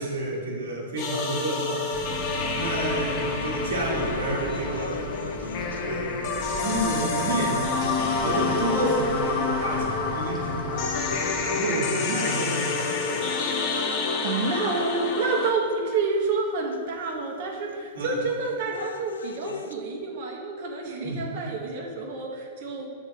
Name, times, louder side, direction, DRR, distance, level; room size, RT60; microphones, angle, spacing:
voice 1, 0.0-1.9 2.5-5.0 5.8-6.2 6.6-7.7 8.2-13.4 17.9-18.2 21.0-21.2, right 1 dB, 75° right, -3 dB, 1.4 m, -30 dB
sound 1, 1.0-15.5, left 4 dB, 45° left, 0.8 m, -28 dB
sound 2, 1.9-11.4, right 1 dB, 10° right, 1.2 m, -39 dB
sound 3, 3.7-7.8 8.5-8.6 9.4-9.7 10.2-15.7 16.7-16.8 18.2-19.7, left 5 dB, 85° left, 0.3 m, -36 dB
voice 2, 13.7-22.9, right 3 dB, 55° right, 0 dB, 1.2 m, -29 dB
7.2 x 3.6 x 4.7 m, 2.2 s
hypercardioid pair, 120°, 0 cm